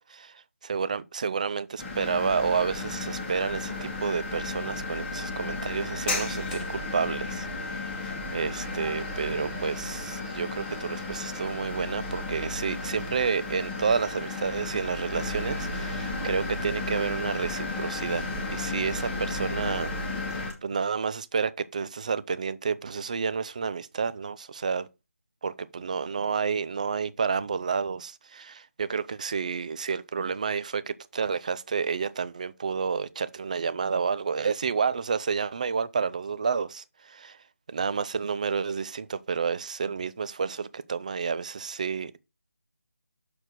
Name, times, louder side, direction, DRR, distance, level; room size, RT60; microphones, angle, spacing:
voice 1, 0.0-0.3 0.7-18.2 18.5-19.9 20.3-24.9 25.4-37.4 37.7-42.2, right 5 dB, 30° right, 0.4 m, -30 dB
sound 1, 1.8-20.5, left 2 dB, 10° left, 1.4 m, -33 dB
6.6 x 4.3 x 6.2 m
figure-of-eight pair, 160°, 8 cm